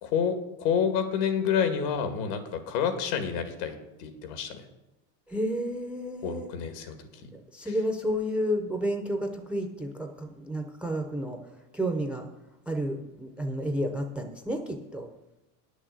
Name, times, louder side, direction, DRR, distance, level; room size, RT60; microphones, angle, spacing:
voice 1, 0.0-4.6 6.2-7.0 7.2-7.3 7.7-7.8, left 7 dB, 85° left, 8 dB, 2.0 m, -29 dB
voice 2, 5.3-6.5 7.5-11.4 11.7-12.3 12.7-15.1, equal, 5° right, 5 dB, 0.3 m, -31 dB
9.7 x 6.3 x 7.9 m, 0.96 s
cardioid pair, 165°, 46 cm